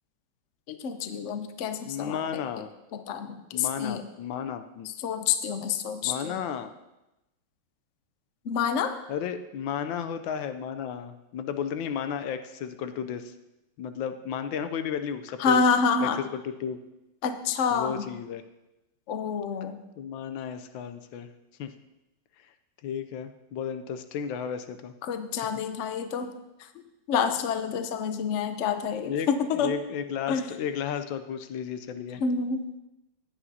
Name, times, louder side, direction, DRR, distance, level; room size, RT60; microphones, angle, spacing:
voice 1, 0.7-2.6 2.9-4.0 5.0-6.4 8.4-8.9 15.4-16.2 17.2-18.1 19.1-19.8 25.0-26.3 27.1-29.7 30.3-30.5 32.2-32.7, left 6 dB, 60° left, 8 dB, 0.8 m, -28 dB
voice 2, 1.9-2.7 3.5-4.9 6.0-6.7 9.1-13.3 13.8-15.6 16.0-16.8 17.7-18.4 20.0-21.3 21.6-21.7 22.8-24.9 29.1-32.2, left 8 dB, 80° left, 9 dB, 1.4 m, -33 dB
15.5 x 10.0 x 2.8 m, 0.94 s
omnidirectional pair, 2.1 m